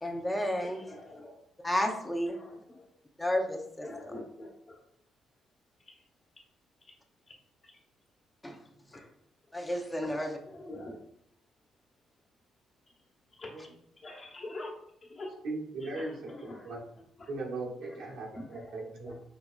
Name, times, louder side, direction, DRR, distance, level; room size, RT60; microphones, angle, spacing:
voice 1, 0.0-0.8 1.6-2.4 3.2-3.9 8.4-8.6 9.5-10.3, left 1 dB, 15° left, 2 dB, 0.7 m, -31 dB
voice 2, 0.6-1.4 2.3-2.9 3.8-4.8 5.8-6.0 7.3-7.4 7.6-7.7 8.9-9.1 10.0-11.0 13.4-14.7 15.0-15.3 15.8-16.7 17.2-17.3 17.8-18.7 19.0-19.2, left 2 dB, 40° left, 0 dB, 1.2 m, -46 dB
voice 3, 15.4-16.3 16.6-16.8 17.3-19.2, right 2 dB, 80° right, -2 dB, 1.0 m, -38 dB
5.0 x 2.9 x 2.4 m, 0.71 s
cardioid pair, 90°, 0 cm